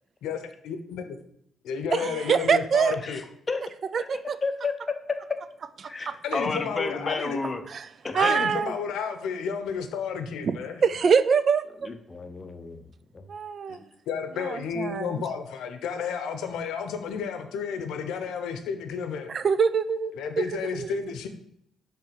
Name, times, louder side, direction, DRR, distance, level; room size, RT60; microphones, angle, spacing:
voice 1, 0.6-1.2 1.6-3.2 6.2-7.4 8.1-10.8 13.7-19.4 20.1-21.3, left 6 dB, 85° left, 8 dB, 0.7 m, -32 dB
voice 2, 1.9-2.9 3.9-4.4 7.7-7.8 8.1-8.7 10.4-11.9 13.3-13.8 14.4-15.2 19.3-20.4 20.7-21.0, right 6 dB, 50° right, 14 dB, 0.3 m, -24 dB
voice 3, 3.0-3.6 3.9-5.2 5.9-7.7 8.0-8.4 11.8-13.3, left 4 dB, 30° left, 6 dB, 0.7 m, -32 dB
6.8 x 3.3 x 4.5 m, 0.72 s
cardioid pair, 90°, 0 cm